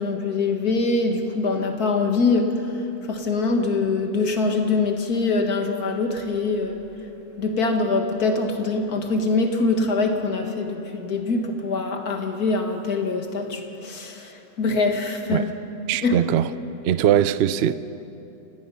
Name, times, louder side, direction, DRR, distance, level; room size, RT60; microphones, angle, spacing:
voice 1, 0.0-6.8 7.4-15.5 16.0-16.2, left 3 dB, 60° left, 2.2 m, -24 dB
voice 2, 15.9-16.5 16.8-17.7, right 10 dB, 75° right, 0.6 m, -20 dB
29.5 x 18.5 x 5.7 m
omnidirectional pair, 1.9 m